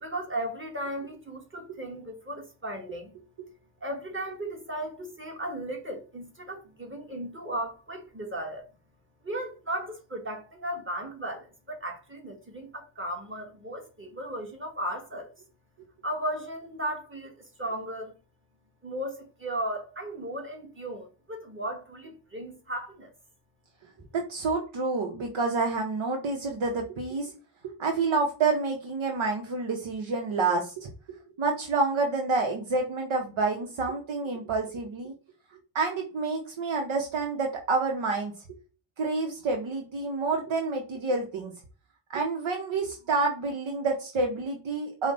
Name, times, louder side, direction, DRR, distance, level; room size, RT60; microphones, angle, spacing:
voice 1, 0.0-3.2 3.8-8.7 9.2-15.3 16.0-18.1 18.8-23.1, right 1 dB, 25° right, 1.5 m, -36 dB
voice 2, 24.1-27.3 27.6-35.1 35.7-38.3 39.0-41.5 42.1-45.1, right 3 dB, 75° right, 0.9 m, -28 dB
5.0 x 2.2 x 3.8 m
cardioid pair, 60°, 47 cm